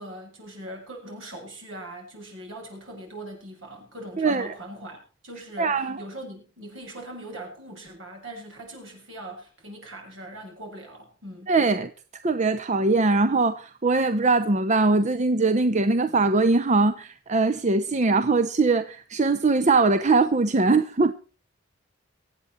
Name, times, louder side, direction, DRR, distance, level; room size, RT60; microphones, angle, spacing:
voice 1, 0.0-11.5, right 1 dB, 65° right, 7.1 m, -41 dB
voice 2, 4.2-4.5 5.6-6.0 11.5-11.9 12.2-21.1, right 3 dB, 35° right, 0.7 m, -21 dB
24.5 x 8.5 x 4.4 m
head